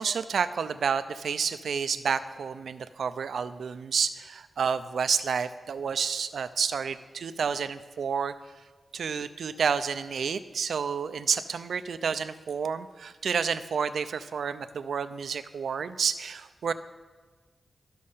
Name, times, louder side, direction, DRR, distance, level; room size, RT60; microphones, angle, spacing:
voice 1, 0.0-8.3 8.9-16.7, right 6 dB, 80° right, 12 dB, 0.5 m, -30 dB
13.0 x 6.4 x 5.6 m, 1.4 s
wide cardioid pair, 115°, 0 cm